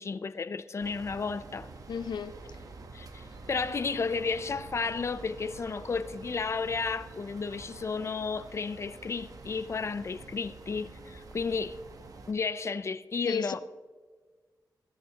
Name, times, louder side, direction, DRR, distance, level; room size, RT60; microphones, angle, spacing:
voice 1, 0.0-1.7 2.9-11.8 12.3-13.6, left 4 dB, 40° left, 0.5 m, -33 dB
sound 1, 0.8-12.3, right 3 dB, 55° right, 1.1 m, -48 dB
voice 2, 1.9-2.3 13.2-13.6, left 6 dB, 85° left, 0.5 m, -33 dB
17.0 x 13.5 x 2.9 m
wide cardioid pair, 120°, 7 cm